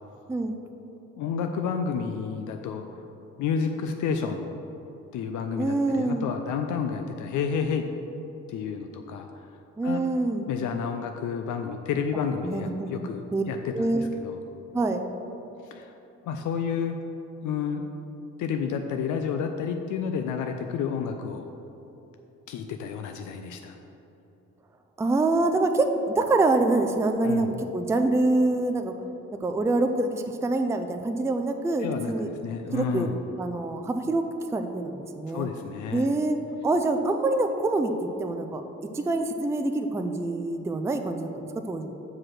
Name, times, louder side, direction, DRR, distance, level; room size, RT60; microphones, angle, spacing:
voice 1, 1.2-2.8 3.4-4.5 5.1-7.8 8.5-9.3 9.8-10.0 10.5-14.4 15.7-15.9 16.2-17.0 17.4-17.8 18.4-21.4 22.5-23.8 27.2-27.6 31.8-33.2 35.3-36.1, left 6 dB, 80° left, 5 dB, 0.5 m, -30 dB
voice 2, 5.6-6.3 9.8-10.5 12.4-13.4 13.7-14.1 14.7-15.1 25.0-28.9 29.4-32.3 32.7-34.3 34.5-35.5 35.9-37.9 38.2-38.6 38.9-41.9, right 2 dB, 10° right, 6 dB, 0.4 m, -25 dB
6.0 x 4.8 x 6.4 m, 3.0 s
cardioid pair, 90°, 30 cm